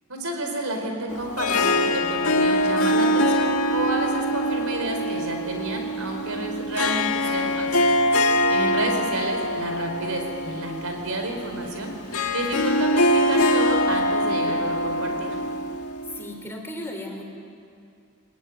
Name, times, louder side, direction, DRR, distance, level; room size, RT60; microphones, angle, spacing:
voice 1, 0.1-7.7 8.5-11.9 12.3-15.4, right 1 dB, 70° right, 3 dB, 4.6 m, -30 dB
Harp, 1.1-16.4, left 1 dB, 75° left, 1.4 m, -24 dB
voice 2, 8.3-9.1 16.0-17.2, left 1 dB, 10° left, 2 dB, 3.6 m, -37 dB
21.5 x 21.0 x 9.7 m, 2.3 s
head